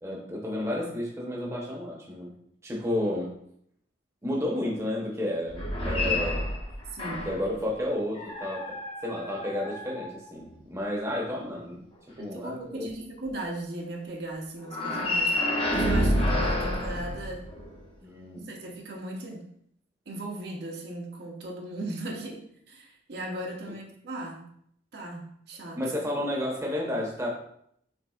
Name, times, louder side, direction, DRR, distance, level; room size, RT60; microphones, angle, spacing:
voice 1, 0.0-2.3 2.6-3.3 4.2-6.5 7.2-11.8 12.2-12.9 18.0-18.5 25.7-27.3, left 1 dB, 15° right, -3 dB, 0.9 m, -31 dB
sound 1, 5.5-7.5 8.1-10.6 14.7-17.8, left 1 dB, 30° left, 0.8 m, -29 dB
voice 2, 6.9-7.3 12.2-15.4 15.7-17.5 18.3-19.5 20.1-24.5 24.9-25.8, right 1 dB, 60° right, -1 dB, 0.8 m, -37 dB
6.1 x 3.5 x 2.4 m, 0.69 s
head